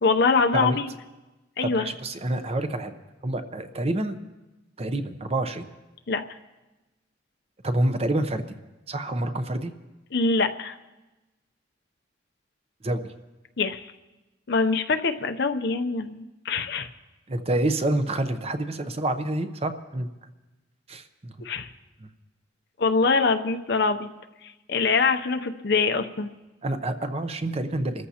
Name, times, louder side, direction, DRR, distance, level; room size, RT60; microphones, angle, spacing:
voice 1, 0.0-0.9 1.6-1.9 6.1-6.2 10.1-10.7 13.6-13.8 14.5-16.9 21.4-21.7 22.8-24.1 24.7-26.3, left 4 dB, 60° left, 7 dB, 0.7 m, -24 dB
voice 2, 1.6-2.9 3.2-4.2 4.8-5.6 7.6-8.6 8.9-9.7 12.8-13.1 17.3-20.1 20.9-21.3 22.0-22.1 26.6-28.1, right 1 dB, 30° right, 9 dB, 0.7 m, -27 dB
27.5 x 14.0 x 2.9 m, 1.1 s
head